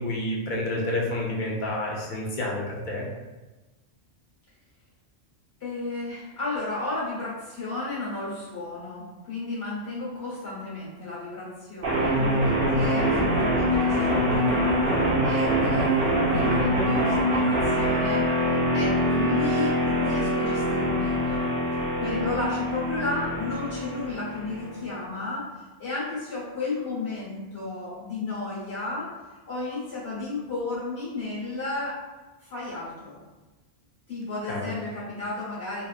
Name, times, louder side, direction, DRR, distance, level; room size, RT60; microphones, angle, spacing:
voice 1, 0.0-3.1 34.5-34.7, left 1 dB, 55° left, -3 dB, 0.7 m, -29 dB
voice 2, 5.6-18.3 18.7-21.5 22.0-29.1 29.5-32.0 32.4-33.2 34.1-35.9, left 3 dB, 70° left, -8 dB, 1.5 m, -33 dB
sound 1, 11.8-24.8, equal, 55° right, 0.8 m, -24 dB
2.9 x 2.4 x 2.4 m, 1.2 s
omnidirectional pair, 1.1 m